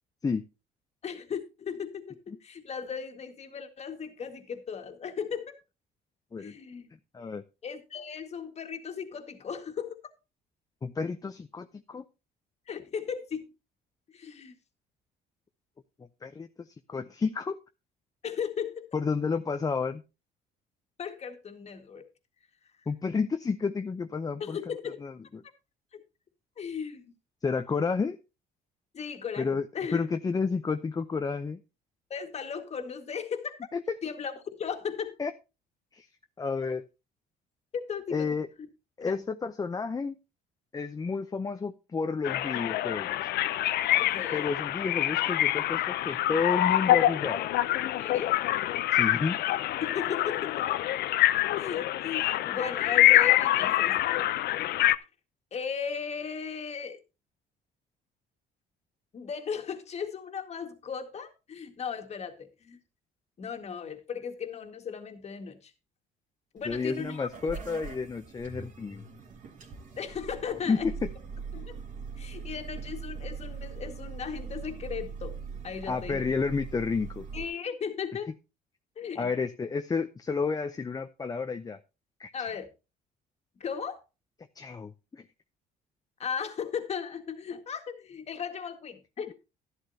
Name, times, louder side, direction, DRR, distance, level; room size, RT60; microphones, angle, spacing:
voice 1, 1.0-5.5 6.4-6.9 7.6-10.0 12.7-13.5 14.1-14.6 18.2-18.9 21.0-22.1 24.4-25.0 25.9-26.0 26.6-27.1 28.9-30.0 32.1-33.6 34.0-35.1 37.7-38.4 39.0-39.2 44.0-44.4 48.0-48.4 49.8-50.5 51.5-54.3 55.5-57.0 59.1-62.8 63.4-65.7 66.5-67.5 69.9-70.9 71.5-71.8 72.2-75.4 75.6-76.2 77.3-78.3 79.0-79.3 82.3-82.7 83.6-84.0 86.2-89.3, left 6 dB, 40° left, 1.8 m, -36 dB
voice 2, 10.8-12.0 16.2-17.6 18.9-20.0 22.9-24.6 25.0-25.4 27.4-28.2 29.4-29.6 29.9-31.6 33.7-34.0 35.2-35.3 35.9-36.1 36.4-36.8 38.1-38.5 39.0-40.1 40.7-43.2 44.3-47.5 48.9-49.4 66.7-69.0 70.7-70.9 75.9-77.3 79.2-81.8 82.2-82.5 84.6-85.2, left 5 dB, 20° left, 0.6 m, -31 dB
sound 1, 42.2-54.9, left 14 dB, 70° left, 0.6 m, -26 dB
sound 2, 66.6-77.4, right 5 dB, 50° right, 2.6 m, -41 dB
12.5 x 11.5 x 2.8 m
cardioid pair, 110°, 17 cm